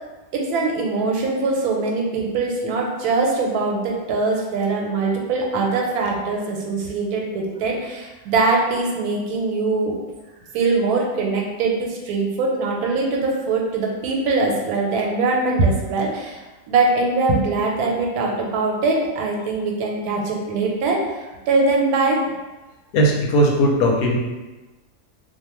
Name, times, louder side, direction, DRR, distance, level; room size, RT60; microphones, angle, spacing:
voice 1, 0.3-10.0 10.5-16.4 16.7-21.0 21.5-22.2, right 3 dB, 90° right, -1 dB, 1.1 m, -22 dB
voice 2, 22.9-24.2, equal, 80° left, -1 dB, 1.0 m, -17 dB
2.6 x 2.1 x 2.9 m, 1.1 s
omnidirectional pair, 1.5 m